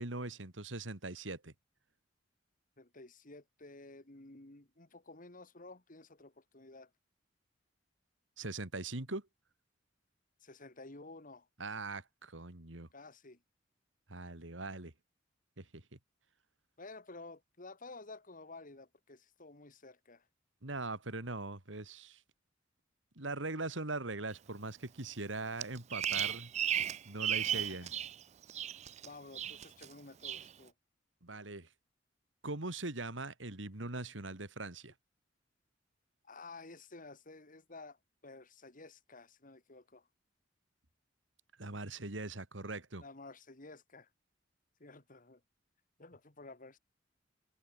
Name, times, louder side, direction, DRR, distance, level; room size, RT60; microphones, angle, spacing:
voice 1, 0.0-1.5 8.4-9.3 11.6-12.9 14.1-14.9 15.6-16.0 20.6-22.2 23.2-26.5 27.1-27.9 31.2-31.7 32.4-34.9 41.6-43.0, right 2 dB, 85° right, 2.8 m, -41 dB
voice 2, 2.8-6.9 10.4-11.5 12.9-13.4 16.8-20.3 27.7-27.9 29.0-30.7 36.2-40.1 43.0-44.1 44.8-45.4 46.0-46.8, left 3 dB, 45° left, 2.5 m, -52 dB
Bird vocalization bird call bird song, 25.6-28.1 28.4-29.1 29.3-29.9 30.2-30.5, right 10 dB, 35° right, 0.4 m, -35 dB
head